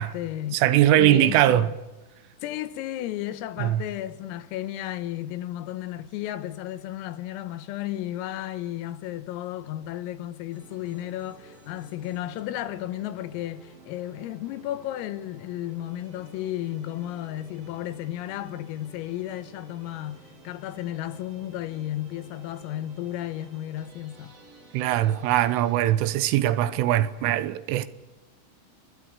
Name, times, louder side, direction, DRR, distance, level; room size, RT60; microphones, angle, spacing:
voice 1, 0.0-0.6 1.0-1.8 2.4-24.4, left 13 dB, 85° left, 3.8 m, -33 dB
voice 2, 0.5-1.7 3.6-3.8 24.7-27.9, right 13 dB, 80° right, 3.3 m, -21 dB
sound 1, 10.5-25.9, right 1 dB, 45° right, 6.6 m, -52 dB
29.0 x 21.5 x 6.8 m
omnidirectional pair, 6.0 m